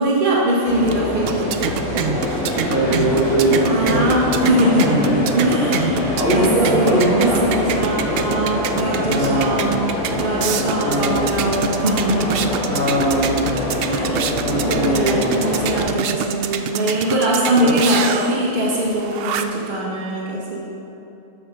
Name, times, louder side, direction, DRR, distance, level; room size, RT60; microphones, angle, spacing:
voice 1, 0.0-1.5 3.6-5.0 5.3-12.4 13.9-14.3 14.6-20.6, right 1 dB, 35° right, -6 dB, 1.4 m, -21 dB
sound 1, 0.5-19.7, right 7 dB, 90° right, 0.5 m, -27 dB
sound 2, 0.6-15.8, left 1 dB, 65° left, 2.2 m, -25 dB
voice 2, 2.7-4.1 4.9-5.6 6.0-7.4 9.0-9.8 10.8-11.4 12.7-13.6 14.4-15.4 17.6-17.7, right 1 dB, 40° left, -5 dB, 1.3 m, -21 dB
12.5 x 4.7 x 5.7 m, 2.9 s
omnidirectional pair, 1.6 m